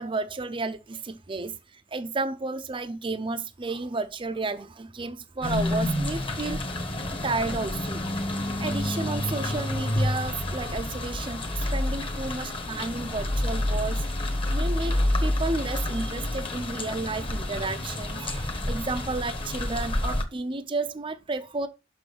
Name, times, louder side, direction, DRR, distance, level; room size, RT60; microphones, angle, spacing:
voice 1, 0.0-6.6 7.2-8.0 8.6-14.0 14.5-21.7, right 3 dB, 30° right, 0.6 m, -32 dB
sound 1, 5.4-20.2, left 1 dB, 30° left, 1.3 m, -29 dB
6.2 x 6.1 x 5.0 m
head